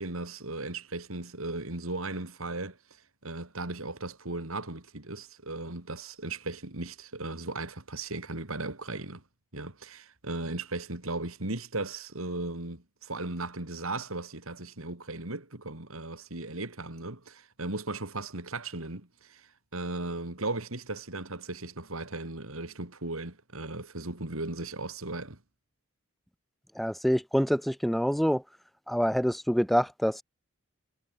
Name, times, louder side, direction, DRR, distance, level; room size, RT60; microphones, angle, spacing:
voice 1, 0.0-2.8 3.2-9.2 9.5-25.4, right 2 dB, 85° right, 3.5 m, -37 dB
voice 2, 26.8-28.4 28.9-30.2, equal, ahead, 0.5 m, -26 dB
head